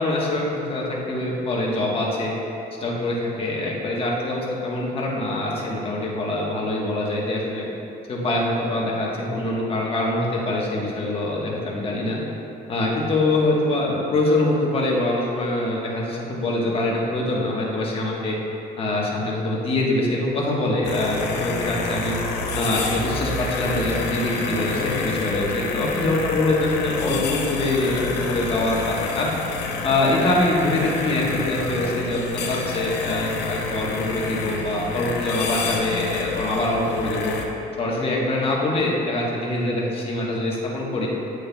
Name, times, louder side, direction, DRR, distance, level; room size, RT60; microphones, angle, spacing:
voice 1, 0.0-2.3 2.8-7.6 8.1-12.2 12.7-18.3 18.8-22.1 22.5-28.8 29.2-29.3 29.8-37.3 37.8-41.1, left 2 dB, 35° left, -3 dB, 1.2 m, -24 dB
sound 1, 20.8-37.4, left 4 dB, 85° left, 0.7 m, -28 dB
8.8 x 6.4 x 2.3 m, 2.8 s
cardioid pair, 110°, 17 cm